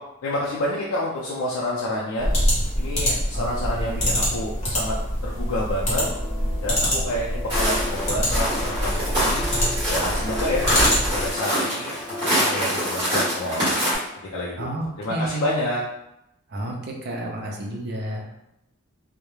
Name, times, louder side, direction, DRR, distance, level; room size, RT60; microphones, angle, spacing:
voice 1, 0.2-2.3 2.8-5.0 5.2-6.1 6.6-9.5 9.9-10.7 11.1-11.9 12.2-13.7 14.3-14.7 15.0-15.8, left 1 dB, 80° left, -5 dB, 0.4 m, -28 dB
sound 1, 2.2-11.3, equal, 30° left, 0.9 m, -25 dB
voice 2, 3.3-4.1 14.6-15.7 16.5-18.2, right 1 dB, 50° right, 0 dB, 0.5 m, -31 dB
sound 2, 6.0-12.4, left 2 dB, 5° right, 0.7 m, -37 dB
Walk footsteps, 7.5-14.0, equal, 20° right, 1.1 m, -25 dB
2.3 x 2.0 x 3.0 m, 0.86 s
head